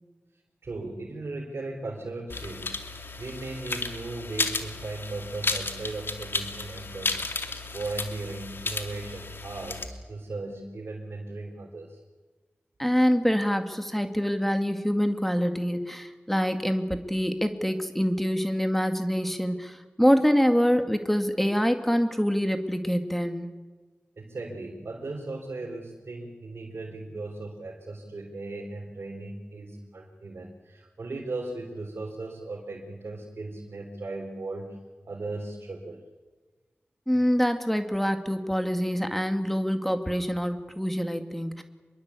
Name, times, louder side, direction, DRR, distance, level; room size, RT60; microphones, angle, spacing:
voice 1, 0.6-2.8 3.2-12.0 24.2-34.8 35.0-36.0, right 2 dB, 80° right, 0 dB, 3.7 m, -37 dB
sound 1, 2.3-9.9, left 3 dB, 65° left, 2.8 m, -33 dB
voice 2, 12.8-23.5 37.1-41.6, equal, 5° left, 7 dB, 2.2 m, -25 dB
26.0 x 22.5 x 8.5 m, 1.3 s
cardioid pair, 45°, 4 cm